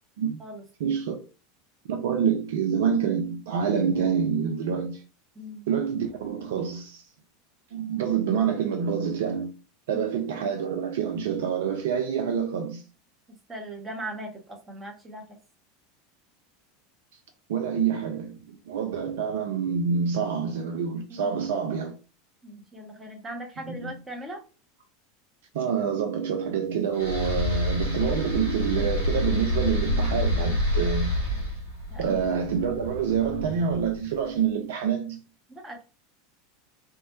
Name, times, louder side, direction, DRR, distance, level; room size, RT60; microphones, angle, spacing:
voice 1, 0.8-1.2 1.9-5.0 5.7-7.0 7.7-9.5 9.9-12.8 17.5-22.0 23.7-23.9 25.5-31.2 32.0-35.2, right 7 dB, 60° right, 0.3 m, -27 dB
voice 2, 5.3-5.7 9.9-10.2 13.5-15.2 21.1-21.4 22.4-24.4 31.9-32.2 35.5-35.8, right 1 dB, 15° right, 0.7 m, -39 dB
sound 1, 27.0-34.1, left 1 dB, 85° right, 1.0 m, -28 dB
2.2 x 2.0 x 2.8 m
figure-of-eight pair, 80°, 0 cm